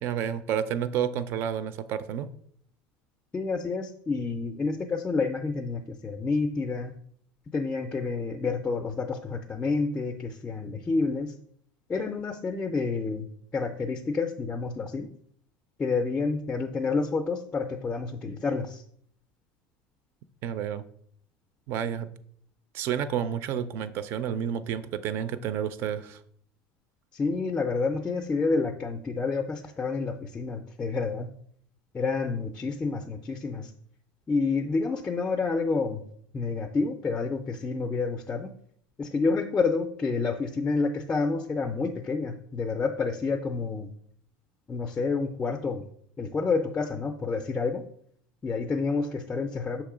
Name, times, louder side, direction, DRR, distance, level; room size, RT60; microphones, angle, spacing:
voice 1, 0.0-2.3 20.4-20.8 21.7-22.1 22.7-26.2, right 9 dB, 45° right, 14 dB, 0.4 m, -30 dB
voice 2, 3.3-6.9 7.5-11.3 11.9-13.3 13.5-15.1 15.8-18.8 27.1-31.3 31.9-33.7 34.3-36.0 36.3-38.5 39.0-43.9 44.7-45.8 46.2-47.8 48.4-49.8, left 4 dB, 15° left, 5 dB, 0.4 m, -29 dB
6.5 x 3.0 x 4.9 m, 0.65 s
cardioid pair, 150°, 5 cm